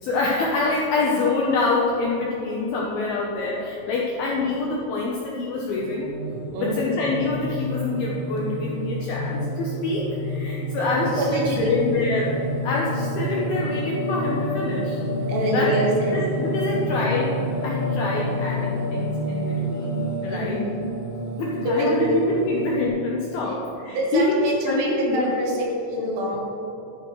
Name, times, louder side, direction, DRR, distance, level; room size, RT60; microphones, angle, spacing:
voice 1, 0.0-6.1 6.6-11.4 11.7-15.0 15.5-15.8 16.1-17.3 17.6-20.6 21.4-25.3, left 3 dB, 75° left, -3 dB, 2.3 m, -26 dB
Singing, 5.7-22.9, equal, 40° left, 1.3 m, -29 dB
voice 2, 11.2-11.8 15.3-16.2 16.7-17.2 20.3-20.8 21.7-22.1 23.4-23.5 23.9-26.4, right 1 dB, 70° right, -2 dB, 3.4 m, -25 dB
12.5 x 11.0 x 3.2 m, 3.0 s
omnidirectional pair, 5.5 m